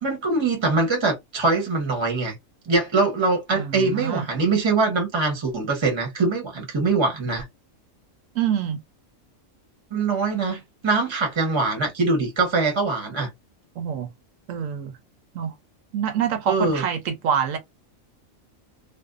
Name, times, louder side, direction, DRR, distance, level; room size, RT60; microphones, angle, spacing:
voice 1, 0.0-2.4 2.7-7.4 9.9-13.3 16.5-16.8, right 3 dB, 25° right, 0.8 m, -23 dB
voice 2, 3.5-4.2 8.3-8.8 13.8-14.1 14.5-14.9 15.3-15.5 15.9-17.6, right 8 dB, 75° right, 1.0 m, -26 dB
2.6 x 2.3 x 2.3 m
omnidirectional pair, 1.4 m